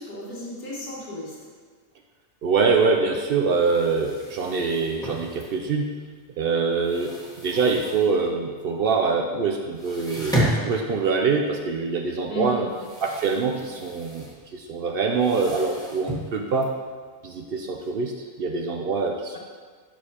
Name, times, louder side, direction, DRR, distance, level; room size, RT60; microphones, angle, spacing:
voice 1, 0.0-1.4 12.3-12.7 19.3-19.4, left 1 dB, 90° left, -5 dB, 1.9 m, -33 dB
voice 2, 2.4-5.9 6.4-7.1 7.4-12.7 13.0-14.2 14.5-16.7 17.2-18.1 18.4-19.4, right 4 dB, 75° right, 3 dB, 0.5 m, -24 dB
sound 1, 3.4-6.0 6.3-8.4 8.7-8.8 9.2-9.3 9.6-17.9, equal, 5° left, 1.2 m, -33 dB
7.3 x 6.4 x 2.9 m, 1.5 s
omnidirectional pair, 1.5 m